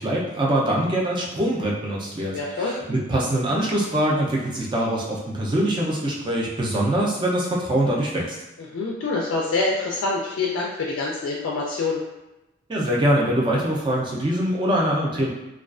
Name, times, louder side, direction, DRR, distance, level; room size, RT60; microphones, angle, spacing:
voice 1, 0.0-8.4 12.7-15.3, right 1 dB, 25° right, -3 dB, 0.4 m, -23 dB
voice 2, 2.3-2.8 8.6-12.0, left 3 dB, 80° left, -3 dB, 0.3 m, -26 dB
2.3 x 2.3 x 2.3 m, 0.98 s
head